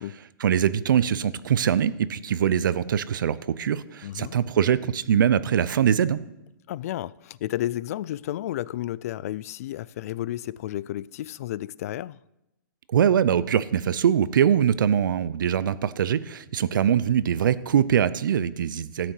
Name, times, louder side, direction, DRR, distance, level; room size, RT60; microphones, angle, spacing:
voice 1, 0.4-6.2 12.9-19.1, right 9 dB, 70° right, 0.7 m, -23 dB
voice 2, 4.0-4.4 6.7-12.2, left 13 dB, 45° left, 0.3 m, -32 dB
13.0 x 6.5 x 7.9 m
hypercardioid pair, 150°, 11 cm